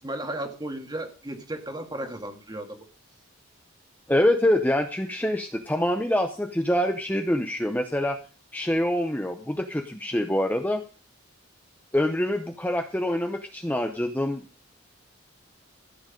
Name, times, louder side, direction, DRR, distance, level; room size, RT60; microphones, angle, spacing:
voice 1, 0.0-2.8, right 1 dB, 20° right, 5 dB, 1.9 m, -34 dB
voice 2, 4.1-8.2 8.5-10.8 11.9-14.4, left 1 dB, 10° left, 5 dB, 0.7 m, -25 dB
14.0 x 8.0 x 5.2 m, 0.36 s
head